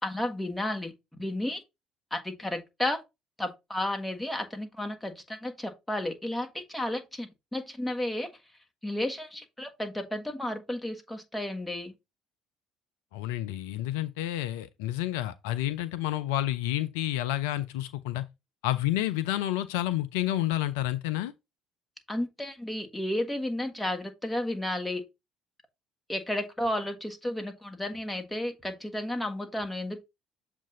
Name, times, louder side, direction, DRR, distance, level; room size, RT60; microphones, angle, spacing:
voice 1, 0.0-0.9 1.2-1.6 2.1-3.0 3.4-8.3 8.8-11.9 22.1-25.0 26.1-30.0, left 1 dB, 10° left, 1.5 m, -32 dB
voice 2, 13.1-18.2 18.6-21.3, left 14 dB, 70° left, 0.4 m, -29 dB
7.2 x 2.5 x 5.3 m
figure-of-eight pair, 55°, 0 cm